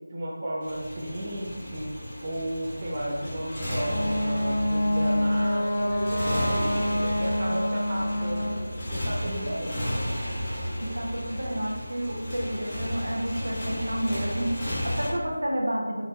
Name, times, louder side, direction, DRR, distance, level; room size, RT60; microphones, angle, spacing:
voice 1, 0.1-1.9 2.2-8.6 8.9-9.8, right 1 dB, 30° right, -5 dB, 0.6 m, -33 dB
Motorcycle, 0.6-15.1, equal, 30° left, 1.1 m, -34 dB
Wind instrument woodwind instrument, 3.6-8.6, left 1 dB, 45° left, 0.6 m, -27 dB
sound 1, 3.8-5.5 5.9-7.6 8.0-9.7 10.1-11.8, equal, 50° right, 1.1 m, -39 dB
voice 2, 10.8-16.1, right 1 dB, 75° right, -1 dB, 0.8 m, -30 dB
4.3 x 2.4 x 3.5 m, 1.4 s
figure-of-eight pair, 165°, 0 cm